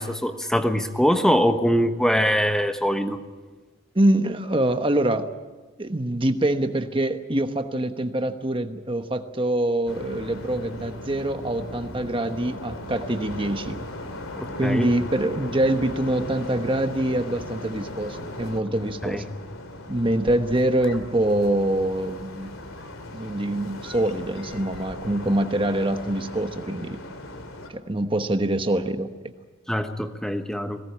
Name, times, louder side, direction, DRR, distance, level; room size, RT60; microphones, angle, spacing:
voice 1, 0.0-3.2 14.4-14.9 19.0-19.2 29.7-30.8, equal, 5° left, 7 dB, 1.2 m, -23 dB
voice 2, 3.9-5.3 5.8-13.8 14.6-19.2 19.9-22.5 23.1-27.0 27.7-29.1, right 1 dB, 25° right, 8 dB, 1.1 m, -24 dB
sound 1, 9.9-27.7, left 1 dB, 85° left, 2.7 m, -37 dB
21.5 x 18.0 x 8.6 m, 1.3 s
head